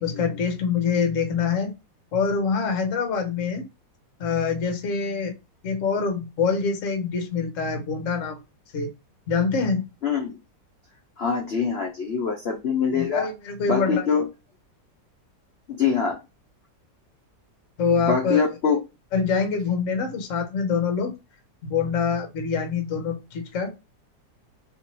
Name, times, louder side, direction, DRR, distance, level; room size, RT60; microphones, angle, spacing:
voice 1, 0.0-1.7 2.1-3.7 4.2-5.3 5.6-8.4 8.7-8.9 9.3-9.8 12.9-14.1 17.8-18.4 19.1-21.1 21.6-23.8, left 5 dB, 55° left, 5 dB, 1.1 m, -25 dB
voice 2, 10.0-10.4 11.2-13.3 13.7-14.3 15.7-16.2 18.1-18.8, left 6 dB, 70° left, 1 dB, 0.5 m, -24 dB
3.0 x 2.7 x 2.9 m, 0.25 s
omnidirectional pair, 2.0 m